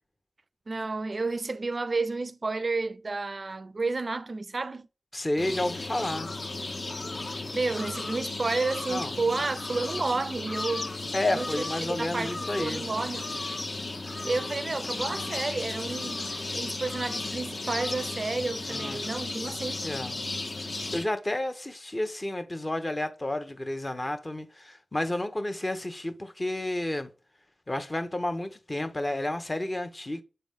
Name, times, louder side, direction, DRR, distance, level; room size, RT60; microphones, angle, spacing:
voice 1, 0.7-4.9 7.5-10.9 11.4-11.5 11.8-13.3 14.2-19.8, right 3 dB, 50° right, 0.4 m, -31 dB
voice 2, 5.1-6.3 8.9-9.1 11.1-12.9 18.7-19.1 19.8-20.2 20.9-27.1 27.7-30.2, left 1 dB, 30° left, 1.0 m, -31 dB
sound 1, 5.4-21.0, left 2 dB, 55° left, 1.1 m, -34 dB
6.6 x 3.9 x 3.6 m
cardioid pair, 50°, 0 cm